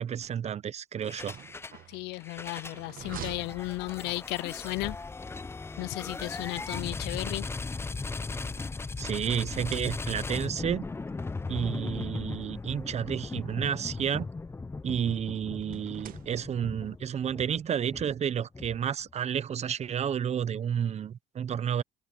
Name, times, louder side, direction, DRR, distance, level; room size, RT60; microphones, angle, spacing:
voice 1, 0.0-1.4 9.0-10.9 11.5-14.3 14.8-21.8, right 8 dB, 40° right, 0.8 m, -31 dB
sound 1, 1.0-1.8 2.1-19.1, left 3 dB, 15° left, 0.5 m, -38 dB
sound 2, 1.2-4.4 5.7-6.9 7.7-9.1 9.5-10.4 11.4-11.5 11.8-11.9 13.1-14.4 15.6-16.8, right 11 dB, 60° right, 1.5 m, -49 dB
voice 2, 1.9-5.0 5.8-7.5, left 22 dB, 85° left, 0.4 m, -34 dB
cardioid pair, 110°, 17 cm